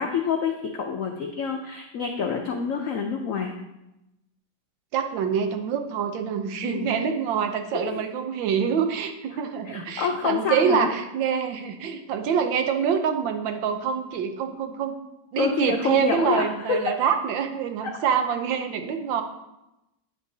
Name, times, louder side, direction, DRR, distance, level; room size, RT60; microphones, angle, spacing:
voice 1, 0.0-3.5 6.6-6.9 7.7-8.0 9.6-10.9 15.4-16.9 17.9-18.0, left 6 dB, 90° left, 3 dB, 0.7 m, -27 dB
voice 2, 4.9-15.0 15.3-19.2, right 7 dB, 75° right, 6 dB, 1.4 m, -26 dB
8.6 x 7.5 x 2.7 m, 0.91 s
omnidirectional pair, 2.1 m